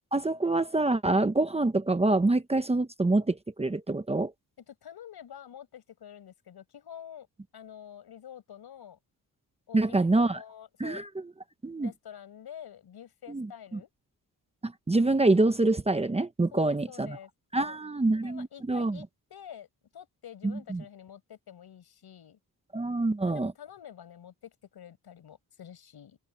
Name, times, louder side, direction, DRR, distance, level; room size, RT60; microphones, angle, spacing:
voice 1, 0.1-4.3 9.7-10.4 10.8-11.1 11.6-11.9 13.3-13.8 14.6-17.2 17.5-19.0 20.4-20.8 22.7-23.5, right 2 dB, 15° right, 0.9 m, -26 dB
voice 2, 4.7-7.3 7.5-9.0 9.7-11.1 11.7-13.9 16.5-17.3 17.6-17.8 18.1-19.7 19.9-22.4 23.2-26.2, left 9 dB, 75° left, 5.6 m, -47 dB
open air
wide cardioid pair, 140°, 39 cm